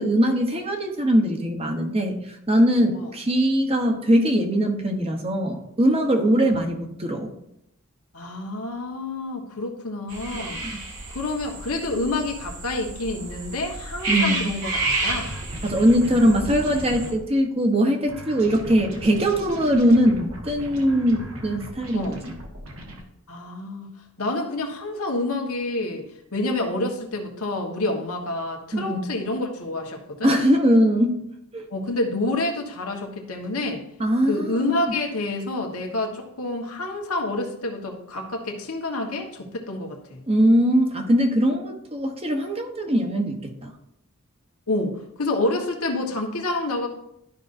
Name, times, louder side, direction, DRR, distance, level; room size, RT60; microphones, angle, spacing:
voice 1, 0.0-2.1 2.5-7.3 10.3-10.6 14.1-14.5 15.6-22.3 28.7-29.0 30.2-31.2 31.5-31.7 34.0-34.9 40.3-43.7, equal, 25° right, 4 dB, 1.0 m, -21 dB
voice 2, 8.1-10.6 11.1-15.3 16.1-16.6 21.9-22.2 23.3-26.1 26.3-30.3 31.7-33.8 34.3-40.2 44.7-46.9, left 2 dB, 90° left, 1 dB, 1.4 m, -28 dB
sound 1, 10.1-17.1, right 2 dB, 90° right, 1.9 m, -30 dB
sound 2, 15.0-17.2 18.1-23.0, equal, 70° right, 1.5 m, -38 dB
12.0 x 5.3 x 2.6 m, 0.79 s
head